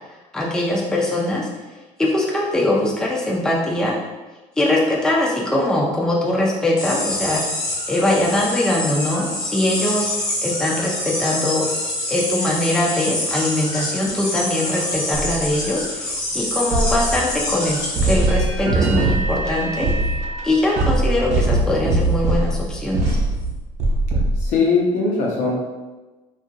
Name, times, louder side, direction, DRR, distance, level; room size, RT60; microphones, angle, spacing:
voice 1, 0.3-1.5 2.0-3.9 4.6-7.4 7.9-10.1 10.4-11.7 12.1-19.9 20.4-23.2, left 1 dB, 5° left, -3 dB, 0.4 m, -21 dB
sound 1, 6.8-18.3, left 1 dB, 30° left, 0.7 m, -26 dB
sound 2, 15.1-15.8 16.7-17.7 18.0-24.5, right 2 dB, 60° right, 0.7 m, -21 dB
voice 2, 24.4-25.7, left 4 dB, 65° left, -2 dB, 0.7 m, -20 dB
2.8 x 2.5 x 2.5 m, 1.2 s
cardioid pair, 125°, 13 cm